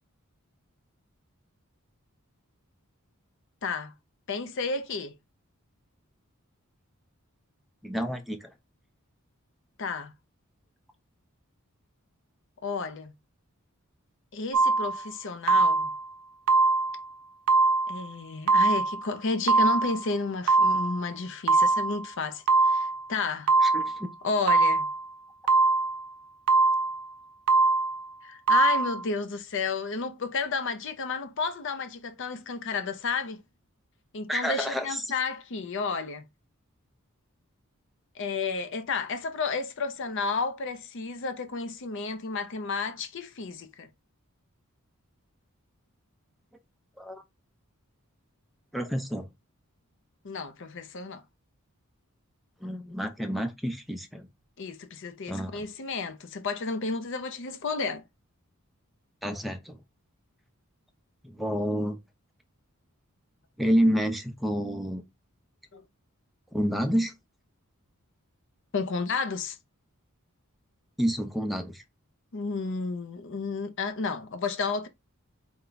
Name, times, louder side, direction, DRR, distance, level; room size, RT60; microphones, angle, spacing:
voice 1, 3.6-3.9 4.3-5.1 9.8-10.1 12.6-13.1 14.3-15.9 17.9-23.5 24.2-24.9 28.2-33.4 34.1-36.2 38.2-43.9 50.2-51.2 54.6-58.0 65.7-65.8 68.7-69.6 72.3-74.9, left 4 dB, 55° left, 0.5 m, -32 dB
voice 2, 7.8-8.5 23.6-24.1 34.3-35.0 47.0-47.2 48.7-49.3 52.6-54.3 55.3-55.6 59.2-59.8 61.2-62.0 63.6-65.0 66.5-67.1 71.0-71.8, equal, ahead, 0.5 m, -29 dB
sound 1, 14.5-15.0 15.5-16.0 16.5-17.0 17.5-18.0 18.5-19.0 19.5-20.0 20.5-21.0 21.5-22.1 22.5-23.0 23.5-24.0 24.5-25.0 25.5-26.1 26.5-27.0 27.5-28.0 28.5-29.0, right 3 dB, 75° right, 0.5 m, -22 dB
4.5 x 2.2 x 3.8 m
head